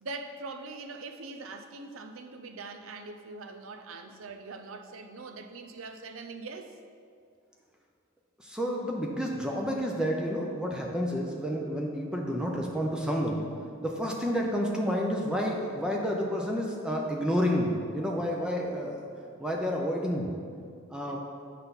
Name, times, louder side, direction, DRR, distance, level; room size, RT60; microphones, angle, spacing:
voice 1, 0.0-6.8 21.1-21.2, right 3 dB, 85° right, 6 dB, 0.6 m, -42 dB
voice 2, 8.4-13.4 13.8-19.0 19.4-20.3 20.9-21.2, equal, 5° right, -1 dB, 0.6 m, -30 dB
8.0 x 5.5 x 4.0 m, 2.3 s
head